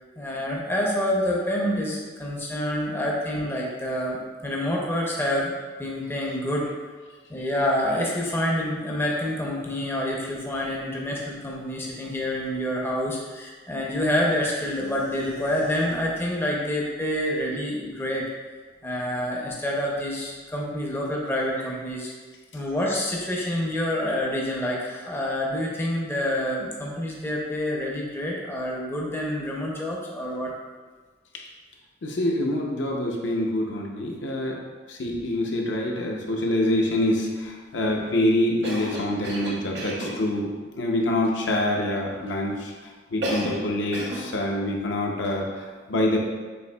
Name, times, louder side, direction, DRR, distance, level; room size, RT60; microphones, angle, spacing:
voice 1, 0.2-6.7 7.3-18.2 18.8-22.1 22.5-30.5, left 1 dB, 10° left, -3 dB, 0.5 m, -27 dB
voice 2, 32.0-34.6 34.9-42.7 43.1-46.2, left 1 dB, 70° left, 0 dB, 0.6 m, -26 dB
Cough, 38.6-40.2 43.2-43.7 43.9-44.3, right 1 dB, 60° right, 0.9 m, -31 dB
6.7 x 2.7 x 2.2 m, 1.4 s
head